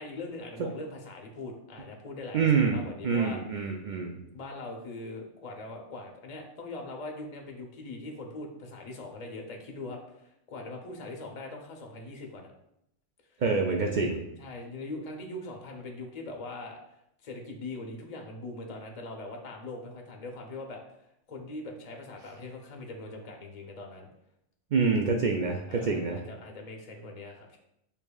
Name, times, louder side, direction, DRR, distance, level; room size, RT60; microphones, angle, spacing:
voice 1, 0.0-3.4 4.3-12.5 14.1-16.8 17.2-20.8 21.3-24.1 25.6-27.6, left 2 dB, 40° left, 2 dB, 0.7 m, -41 dB
voice 2, 2.3-4.2 13.4-14.2 24.7-26.2, right 5 dB, 65° right, 0 dB, 0.4 m, -26 dB
6.7 x 2.8 x 2.3 m, 0.79 s
omnidirectional pair, 1.3 m